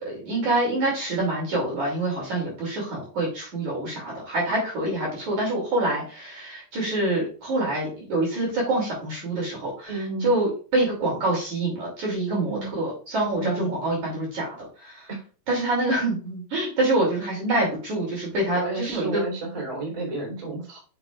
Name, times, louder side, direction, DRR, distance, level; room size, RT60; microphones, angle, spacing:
voice 1, 0.0-15.1 15.5-19.2, right 2 dB, 45° right, -3 dB, 3.4 m, -26 dB
voice 2, 9.9-10.3 12.3-12.7 13.3-13.7 18.5-20.8, right 3 dB, 10° right, -3 dB, 2.4 m, -31 dB
7.8 x 6.9 x 2.4 m, 0.37 s
omnidirectional pair, 5.9 m